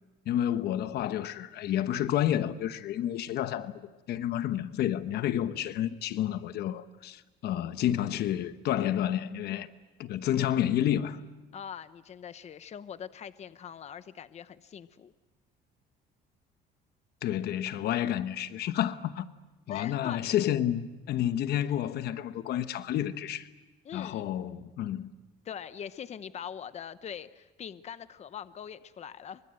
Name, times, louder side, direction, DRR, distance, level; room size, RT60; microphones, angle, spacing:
voice 1, 0.3-9.7 10.0-11.2 17.2-19.3 19.7-23.5 23.9-25.1, left 11 dB, 70° left, 1.1 m, -30 dB
voice 2, 11.5-15.1 19.7-20.3 23.8-24.3 25.4-29.4, left 8 dB, 40° left, 0.9 m, -42 dB
28.5 x 24.5 x 7.8 m
cardioid pair, 110°, 17 cm